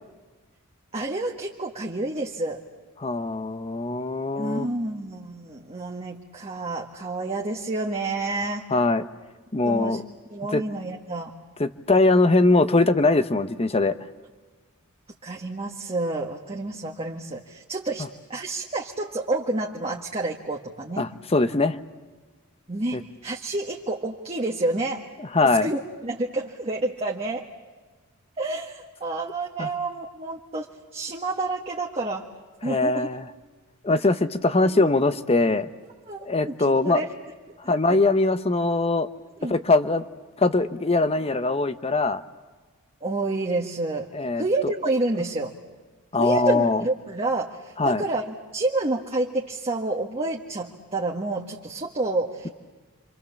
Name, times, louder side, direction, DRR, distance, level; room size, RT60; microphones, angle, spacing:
voice 1, 0.9-2.6 4.3-8.7 9.6-10.0 10.3-11.3 15.2-18.0 18.3-21.1 22.7-25.1 25.6-27.5 28.4-30.7 30.9-32.3 32.6-33.1 33.9-34.0 34.7-34.9 36.1-37.1 37.5-37.8 39.4-39.5 43.0-44.1 44.4-45.5 46.2-52.5, right 2 dB, 30° right, -1 dB, 1.6 m, -29 dB
voice 2, 3.0-4.7 8.7-9.0 9.5-10.0 10.5-10.6 11.6-14.0 21.0-21.8 22.9-23.0 25.2-25.7 29.6-29.7 32.6-33.2 33.8-35.7 36.2-37.0 37.7-39.1 39.5-40.0 40.4-42.2 44.1-44.7 46.1-46.8 47.8-48.0, left 2 dB, 30° left, 11 dB, 1.0 m, -22 dB
29.5 x 26.0 x 7.2 m, 1.3 s
head